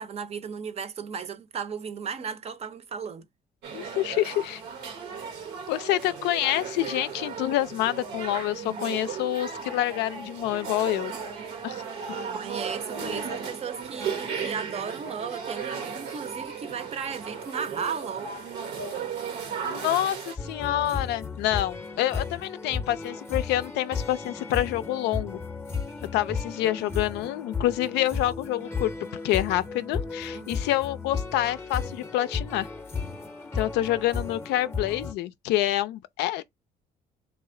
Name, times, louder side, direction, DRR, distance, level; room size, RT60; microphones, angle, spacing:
voice 1, 0.0-3.3 12.3-18.3 30.3-30.6, right 6 dB, 40° right, 0.6 m, -35 dB
sound 1, 3.6-20.4, right 6 dB, 85° right, 1.0 m, -35 dB
voice 2, 3.7-4.6 5.7-11.1 11.6-11.8 19.6-25.4 26.1-28.9 29.2-32.7 33.5-36.4, left 14 dB, 85° left, 0.4 m, -27 dB
sound 2, 20.4-35.1, left 5 dB, 15° left, 0.6 m, -34 dB
3.1 x 2.5 x 3.7 m
cardioid pair, 110°, 17 cm